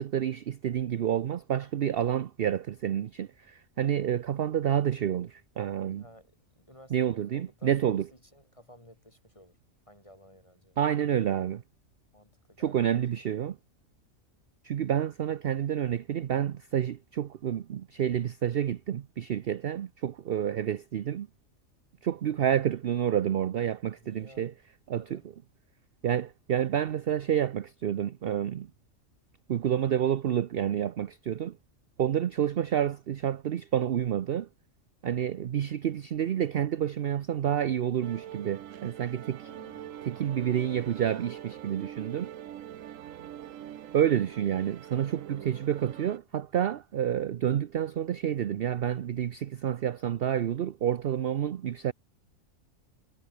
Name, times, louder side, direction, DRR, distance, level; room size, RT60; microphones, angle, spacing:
voice 1, 0.0-6.0 6.9-8.1 10.8-11.6 12.6-13.6 14.6-21.3 22.0-24.5 24.9-25.2 26.0-28.7 29.5-31.6 32.0-34.5 35.0-39.4 40.0-42.3 43.9-51.9, right 10 dB, 55° right, 0.8 m, -29 dB
voice 2, 6.0-9.6 9.9-11.0 12.1-13.0 24.0-24.5 25.0-25.3 39.4-40.5, left 1 dB, 25° left, 8.2 m, -55 dB
sound 1, 38.0-46.2, right 11 dB, 75° right, 1.2 m, -44 dB
omnidirectional pair, 1.4 m